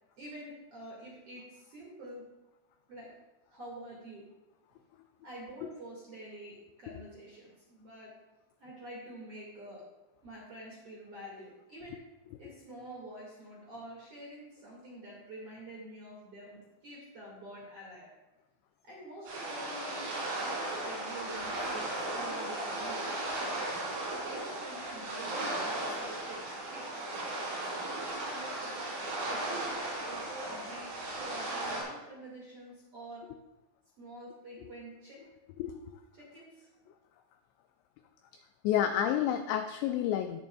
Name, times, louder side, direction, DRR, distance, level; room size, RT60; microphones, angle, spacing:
voice 1, 0.2-2.3 2.9-3.1 3.5-4.2 4.7-4.8 5.2-8.1 8.6-9.8 10.2-12.0 12.4-18.1 18.8-20.1 20.8-23.1 24.2-26.4 26.7-27.7 28.3-33.3 34.0-35.2 36.1-36.7, right 1 dB, 45° right, -5 dB, 2.0 m, -47 dB
sound 1, 19.3-31.8, right 1 dB, 90° right, 6.2 m, -36 dB
voice 2, 38.6-40.4, left 10 dB, 90° left, 7 dB, 2.4 m, -29 dB
19.0 x 6.8 x 2.3 m, 1.0 s
omnidirectional pair, 5.5 m